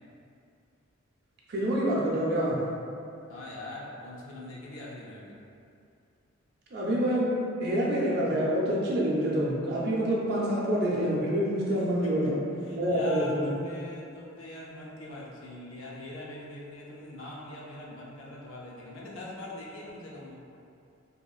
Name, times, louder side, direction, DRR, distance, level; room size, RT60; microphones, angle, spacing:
voice 1, 1.5-2.6 6.7-12.4 12.7-13.5, equal, 50° right, -5 dB, 0.5 m, -27 dB
voice 2, 3.3-5.4 12.0-12.3 12.6-20.4, left 1 dB, 75° left, -4 dB, 0.5 m, -42 dB
2.9 x 2.4 x 2.3 m, 2.5 s
head